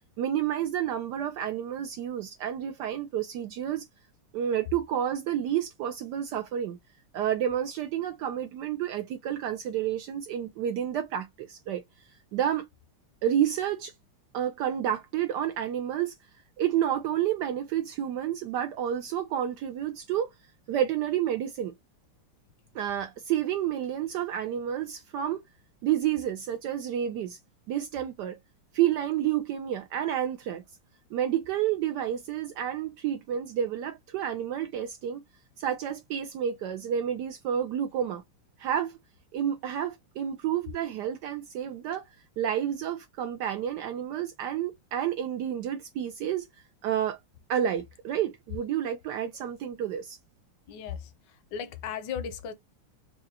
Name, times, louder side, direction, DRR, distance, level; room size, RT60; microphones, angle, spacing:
voice 1, 0.2-3.9 4.3-6.8 7.1-11.8 12.3-12.7 13.2-13.9 14.3-16.1 16.6-20.3 20.7-21.7 22.7-25.4 25.8-27.4 27.7-28.4 28.7-30.6 31.1-35.2 35.6-38.2 38.6-39.0 39.3-42.0 42.4-46.5 46.8-47.2 47.5-50.2, right 10 dB, 90° right, 0.9 m, -30 dB
voice 2, 50.7-52.5, left 7 dB, 65° left, 1.2 m, -36 dB
4.8 x 2.1 x 2.7 m
omnidirectional pair, 2.4 m